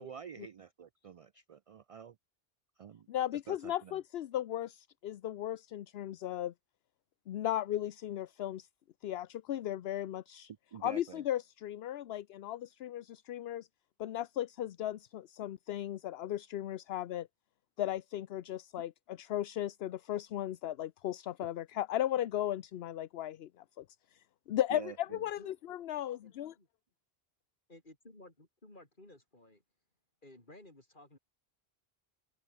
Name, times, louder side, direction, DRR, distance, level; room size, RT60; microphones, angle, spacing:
voice 1, 0.0-2.2 2.8-3.1 3.5-4.0 10.7-11.2 24.7-25.2, right 7 dB, 55° right, 0.4 m, -48 dB
voice 2, 3.1-6.5 7.3-8.7 9.0-10.5 10.8-13.7 14.0-17.3 17.8-23.8 24.1-26.5, left 12 dB, 75° left, 0.9 m, -36 dB
voice 3, 25.1-26.3 26.6-26.7 27.7-29.6 30.2-31.2, left 1 dB, 50° left, 5.1 m, -56 dB
open air
omnidirectional pair, 1.1 m